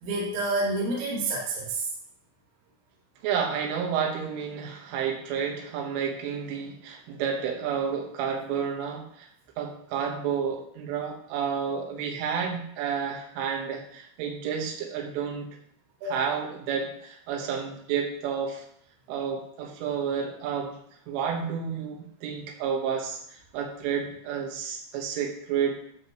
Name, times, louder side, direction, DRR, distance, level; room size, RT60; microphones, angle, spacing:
voice 1, 0.0-1.9 16.0-16.4, right 2 dB, 75° right, -4 dB, 4.5 m, -29 dB
voice 2, 3.2-9.3 9.6-15.5 16.1-18.6 19.1-20.7 21.1-23.2 23.5-25.8, right 7 dB, 90° right, 2 dB, 3.9 m, -30 dB
11.5 x 7.5 x 3.0 m, 0.66 s
omnidirectional pair, 5.5 m